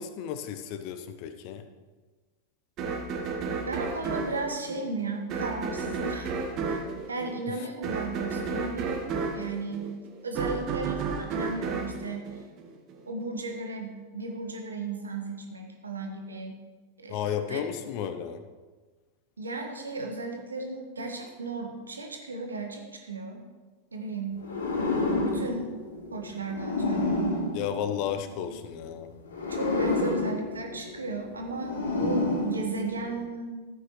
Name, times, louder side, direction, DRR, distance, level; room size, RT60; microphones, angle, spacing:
voice 1, 0.0-1.7 17.1-18.4 27.5-29.1, left 9 dB, 45° left, 9 dB, 0.8 m, -33 dB
sound 1, 2.8-13.0, right 4 dB, 35° right, 1.3 m, -32 dB
voice 2, 3.6-6.4 6.7-9.0 9.3-9.9 10.2-12.3 13.1-16.6 17.0-17.2 17.5-17.6 19.4-23.5 23.9-24.4 25.2-25.7 26.1-27.2 29.5-33.7, right 3 dB, 75° right, 3 dB, 1.5 m, -35 dB
sound 2, 24.4-28.6 29.3-33.2, left 2 dB, 65° left, 1.6 m, -30 dB
14.0 x 8.8 x 3.2 m, 1.3 s
figure-of-eight pair, 90°, 0 cm